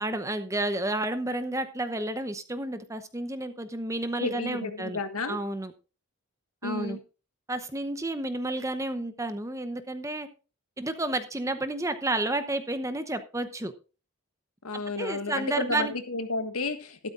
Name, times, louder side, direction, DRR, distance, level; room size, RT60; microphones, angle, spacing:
voice 1, 0.0-5.0 5.3-5.7 6.6-7.0 7.5-10.3 10.8-13.7 15.0-15.9, right 1 dB, 15° right, 10 dB, 0.8 m, -31 dB
voice 2, 4.2-5.4 6.6-7.0 14.6-17.0, left 3 dB, 75° left, 8 dB, 1.7 m, -32 dB
13.0 x 12.5 x 2.5 m, 0.33 s
head